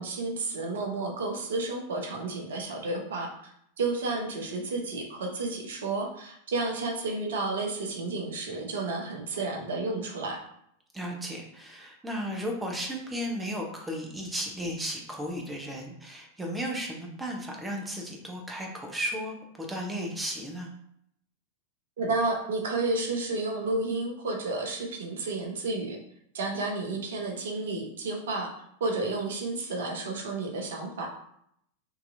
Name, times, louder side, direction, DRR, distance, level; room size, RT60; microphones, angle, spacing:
voice 1, 0.0-10.4 22.0-26.0 26.3-28.5 28.8-31.1, right 3 dB, 60° right, 1 dB, 0.9 m, -31 dB
voice 2, 10.9-20.7, equal, 10° right, 0 dB, 0.8 m, -34 dB
5.6 x 2.9 x 2.6 m, 0.71 s
figure-of-eight pair, 90°, 0 cm